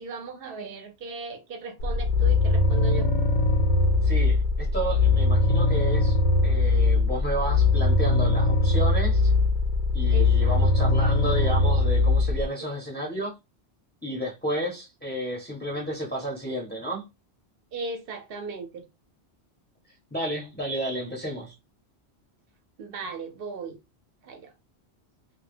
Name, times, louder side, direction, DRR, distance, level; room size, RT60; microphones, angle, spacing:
voice 1, 0.0-3.1 10.1-10.9 17.7-18.8 22.8-23.8 24.2-24.5, right 5 dB, 65° right, 0.8 m, -37 dB
sound 1, 1.8-12.5, left 3 dB, 80° left, 0.9 m, -21 dB
voice 2, 4.0-6.2 6.4-9.3 9.9-13.3 14.0-17.0 20.1-21.5, right 1 dB, 10° left, 0.6 m, -32 dB
2.2 x 2.1 x 3.3 m
omnidirectional pair, 1.1 m